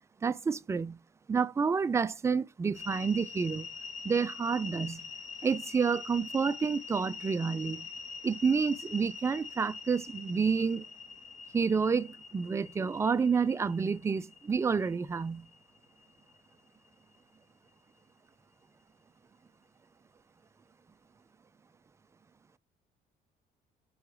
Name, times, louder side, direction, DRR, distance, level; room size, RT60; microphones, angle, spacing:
voice 1, 0.2-1.0 1.3-3.7 4.0-5.0 5.4-7.9 8.2-10.8 11.5-15.5, right 5 dB, 15° right, 0.3 m, -29 dB
sound 1, 2.7-16.9, left 5 dB, 45° left, 1.0 m, -45 dB
4.7 x 4.7 x 4.9 m
cardioid pair, 110°, 17 cm